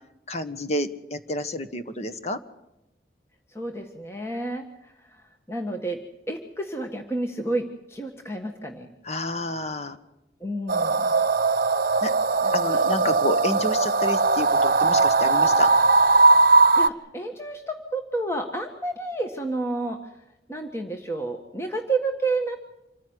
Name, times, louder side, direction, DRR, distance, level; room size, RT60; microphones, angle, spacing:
voice 1, 0.3-2.4 9.0-10.0 12.0-12.1 12.5-15.7, left 1 dB, 40° left, 9 dB, 1.4 m, -29 dB
voice 2, 3.5-4.9 5.5-6.0 6.3-8.9 10.4-11.1 12.4-12.8 16.6-20.0 20.5-22.6, right 2 dB, 15° left, 4 dB, 1.5 m, -30 dB
sound 1, 10.7-16.9, right 3 dB, 55° right, 0.9 m, -19 dB
26.5 x 15.0 x 9.6 m, 0.90 s
head